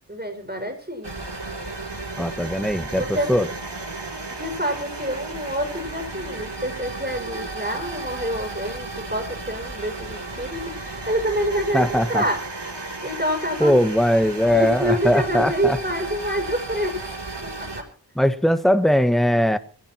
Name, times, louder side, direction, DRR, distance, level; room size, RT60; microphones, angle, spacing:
voice 1, 0.1-1.2 3.0-3.4 4.4-12.4 13.0-13.7 14.5-17.0 17.4-17.9, equal, 25° right, 6.2 m, -27 dB
sound 1, 1.0-17.8, right 3 dB, 80° right, 3.7 m, -34 dB
voice 2, 2.2-3.5 11.7-12.2 13.6-15.8 18.1-19.6, equal, ahead, 1.6 m, -20 dB
24.5 x 17.0 x 3.1 m
wide cardioid pair, 40°, 41 cm